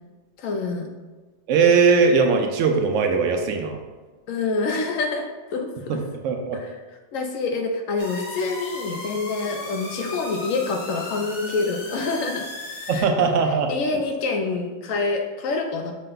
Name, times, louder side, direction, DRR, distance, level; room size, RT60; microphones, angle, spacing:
voice 1, 0.4-0.9 4.3-6.0 6.5-6.8 7.1-12.5 12.9-13.3 13.7-15.9, left 3 dB, 80° left, 3 dB, 1.0 m, -27 dB
voice 2, 1.5-3.8 5.9-6.0 6.2-6.6 12.9-13.7, right 5 dB, 80° right, 4 dB, 0.9 m, -19 dB
sound 1, 8.0-13.0, left 2 dB, 50° left, 1.0 m, -36 dB
6.4 x 2.2 x 3.8 m, 1.3 s
omnidirectional pair, 1.3 m